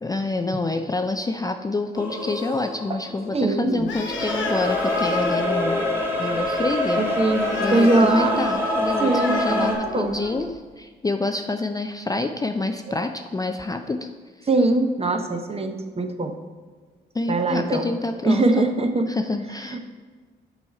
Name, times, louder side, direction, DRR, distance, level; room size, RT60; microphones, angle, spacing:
voice 1, 0.0-5.8 6.2-7.0 7.6-14.1 14.4-14.5 17.1-18.7 19.1-19.8, left 3 dB, 20° left, 6 dB, 0.4 m, -27 dB
sound 1, 1.9-3.6 4.0-9.8, left 1 dB, 10° right, 1.4 m, -26 dB
voice 2, 3.3-3.9 7.0-8.5 9.0-10.2 14.5-16.4 17.3-17.9 18.2-19.1 19.7-19.8, right 2 dB, 30° right, 6 dB, 0.8 m, -22 dB
Animal, 3.8-10.6, left 5 dB, 70° left, 0.7 m, -33 dB
6.9 x 3.1 x 4.8 m, 1.5 s
supercardioid pair, 50°, 20 cm